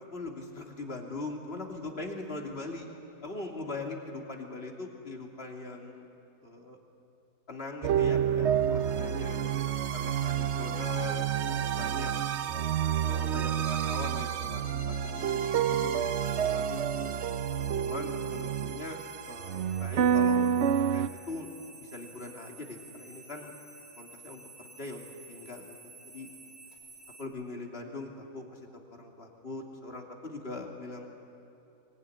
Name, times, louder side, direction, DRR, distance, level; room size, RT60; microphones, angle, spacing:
voice 1, 0.1-2.9 3.2-6.0 6.4-6.8 7.5-9.4 9.9-12.1 13.0-17.2 17.7-20.5 20.9-21.5 21.8-23.5 24.0-25.7 26.1-26.3 27.2-28.6 28.9-31.1, left 2 dB, 40° left, 1 dB, 3.1 m, -41 dB
sound 1, 7.8-21.1, right 8 dB, 55° right, 0.9 m, -29 dB
sound 2, 13.6-27.2, right 1 dB, 75° left, 6.4 m, -51 dB
24.5 x 23.0 x 10.0 m, 2.8 s
omnidirectional pair, 1.7 m